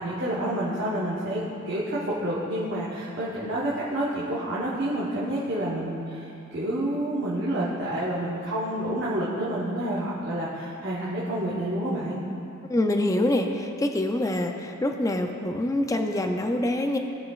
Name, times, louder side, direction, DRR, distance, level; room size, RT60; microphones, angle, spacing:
voice 1, 0.0-12.2, right 1 dB, 55° right, -8 dB, 1.1 m, -29 dB
voice 2, 12.6-17.0, left 1 dB, 15° left, 4 dB, 0.4 m, -25 dB
16.5 x 5.9 x 2.4 m, 2.8 s
head